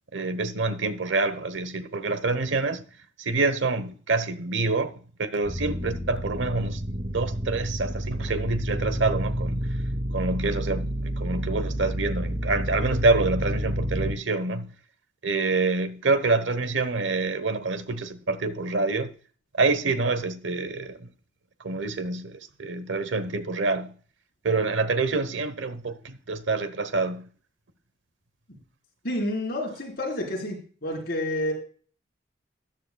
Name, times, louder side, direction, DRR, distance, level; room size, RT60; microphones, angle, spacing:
voice 1, 0.1-2.8 3.2-6.8 7.1-9.7 10.1-14.7 15.2-19.1 19.6-21.1 21.6-23.9 24.4-27.3, right 3 dB, 90° right, 1.0 m, -26 dB
sound 1, 5.4-14.1, equal, 35° right, 2.7 m, -30 dB
voice 2, 29.0-31.5, left 1 dB, 55° left, 4.2 m, -29 dB
13.5 x 10.5 x 2.3 m
head